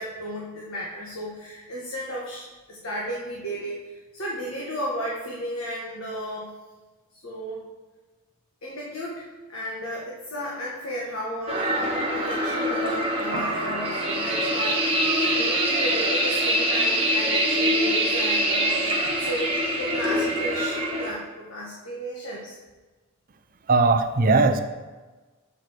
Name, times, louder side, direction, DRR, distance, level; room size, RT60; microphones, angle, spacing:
voice 1, 0.0-6.5 7.1-7.6 8.6-11.9 12.1-22.5, equal, 70° left, -5 dB, 1.5 m, -34 dB
sound 1, 11.5-21.1, right 1 dB, 25° right, 1.4 m, -24 dB
voice 2, 23.7-24.6, right 3 dB, 40° right, 8 dB, 0.6 m, -19 dB
8.0 x 4.9 x 6.1 m, 1.3 s
head